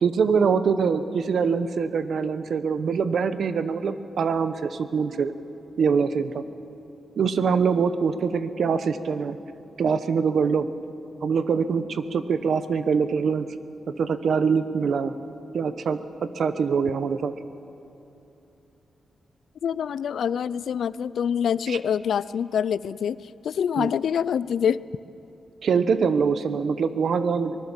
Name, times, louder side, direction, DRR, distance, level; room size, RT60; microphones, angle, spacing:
voice 1, 0.0-5.3 5.8-6.4 7.2-9.4 9.8-10.7 11.2-13.5 13.9-15.1 15.5-17.3 21.7-21.8 23.8-23.9 25.6-27.6, right 6 dB, 60° right, 12 dB, 1.0 m, -24 dB
voice 2, 19.6-24.8, left 8 dB, 70° left, 19 dB, 0.4 m, -25 dB
24.5 x 20.0 x 7.3 m, 2.9 s
wide cardioid pair, 165°, 0 cm